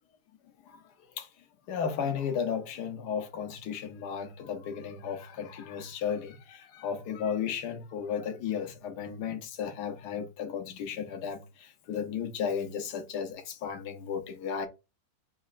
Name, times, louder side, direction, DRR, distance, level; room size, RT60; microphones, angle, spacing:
voice 1, 1.7-14.7, left 7 dB, 80° left, 1.4 m, -34 dB
4.3 x 2.9 x 2.4 m
omnidirectional pair, 1.7 m